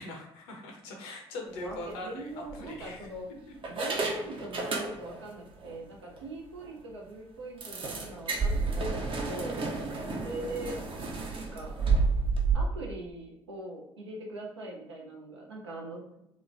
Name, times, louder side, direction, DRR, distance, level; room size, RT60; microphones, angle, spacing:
voice 1, 0.0-3.0 10.0-10.5, left 2 dB, 70° left, 2 dB, 0.6 m, -42 dB
voice 2, 1.4-3.3 3.7-9.6 10.2-11.7 12.5-16.0, right 1 dB, 85° right, -1 dB, 0.5 m, -41 dB
sound 1, 1.6-1.8 2.5-3.2 3.6-5.3 5.6-5.8 6.2-6.3 6.6-6.7 7.6-12.5, right 4 dB, 40° right, 0.6 m, -31 dB
2.9 x 2.0 x 2.5 m, 0.80 s
figure-of-eight pair, 50°, 14 cm